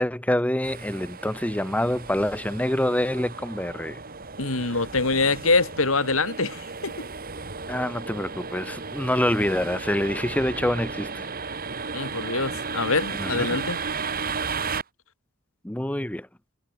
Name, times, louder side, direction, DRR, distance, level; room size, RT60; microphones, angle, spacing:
voice 1, 0.0-4.0 4.6-4.8 7.7-11.3 13.2-13.5 15.6-16.3, left 1 dB, 5° left, 1.0 m, -26 dB
sound 1, 0.6-14.8, right 4 dB, 45° right, 3.7 m, -34 dB
voice 2, 4.4-7.1 11.9-13.8, left 3 dB, 70° left, 3.2 m, -24 dB
head